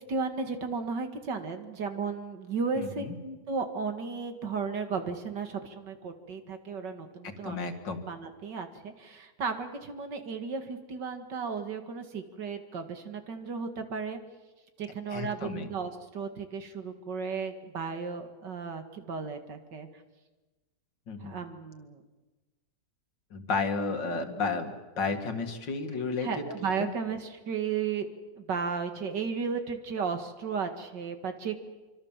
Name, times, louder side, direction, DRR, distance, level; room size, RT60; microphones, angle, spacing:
voice 1, 0.1-7.7 8.0-14.2 14.8-19.9 21.2-22.0 26.2-28.1 28.4-31.6, right 5 dB, 70° right, 7 dB, 2.5 m, -34 dB
voice 2, 2.8-3.1 7.4-8.0 15.1-15.7 21.1-21.3 23.3-26.3 26.8-26.9, left 4 dB, 80° left, 6 dB, 2.7 m, -32 dB
25.0 x 25.0 x 7.4 m, 1.2 s
omnidirectional pair, 1.9 m